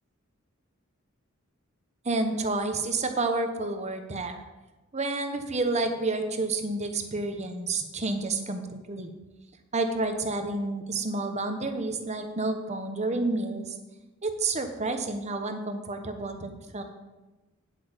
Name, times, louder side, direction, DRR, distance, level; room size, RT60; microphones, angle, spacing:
voice 1, 2.0-4.4 4.9-8.6 8.9-9.1 9.7-13.7 14.2-16.8, right 3 dB, 35° right, 6 dB, 1.0 m, -29 dB
9.4 x 8.3 x 5.2 m, 1.1 s
head